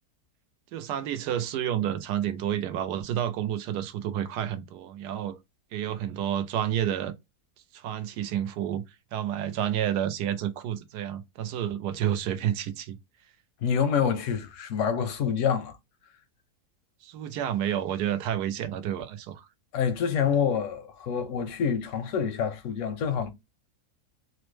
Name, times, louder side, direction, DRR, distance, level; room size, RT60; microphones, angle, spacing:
voice 1, 0.7-5.4 5.7-7.1 7.7-8.8 9.1-13.0 17.0-19.5, right 10 dB, 90° right, 1.2 m, -30 dB
voice 2, 13.6-15.8 19.7-23.3, left 7 dB, 70° left, 0.8 m, -27 dB
3.2 x 2.1 x 3.1 m
omnidirectional pair, 1.7 m